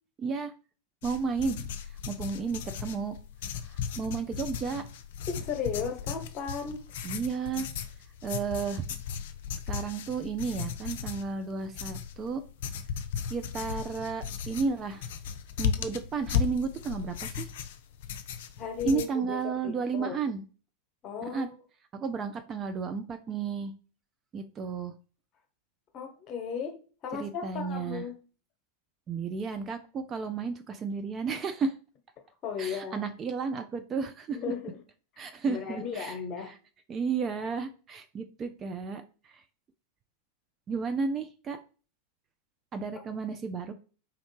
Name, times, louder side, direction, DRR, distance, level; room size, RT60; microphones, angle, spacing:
voice 1, 0.2-0.5 1.0-1.7 2.1-3.2 3.7-4.8 7.0-7.7 8.2-8.9 9.7-12.4 13.3-15.1 15.6-17.5 18.8-20.4 21.2-21.5 21.9-23.7 24.3-24.9 27.1-28.1 29.1-31.7 32.6-34.4 35.2-36.2 36.5-36.6 36.9-39.0 40.7-41.6 42.7-43.7, right 5 dB, 25° right, 0.5 m, -32 dB
sound 1, 1.0-19.1, left 7 dB, 55° left, 0.5 m, -36 dB
voice 2, 5.3-6.8 18.6-20.2 21.0-21.5 25.9-26.8 27.0-28.2 32.4-33.0 34.3-34.8 35.4-36.5, left 6 dB, 35° left, 1.2 m, -35 dB
3.7 x 3.2 x 4.6 m
figure-of-eight pair, 90°, 0 cm